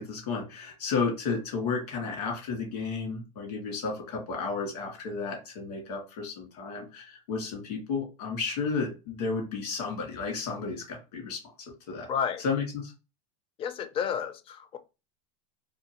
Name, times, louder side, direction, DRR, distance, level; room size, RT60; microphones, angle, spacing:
voice 1, 0.0-11.4 11.9-12.1 12.4-12.9, left 4 dB, 80° left, 2.1 m, -32 dB
voice 2, 12.1-12.4 13.6-14.8, left 7 dB, 30° left, 0.5 m, -31 dB
3.6 x 2.7 x 2.9 m
supercardioid pair, 130°, 20 cm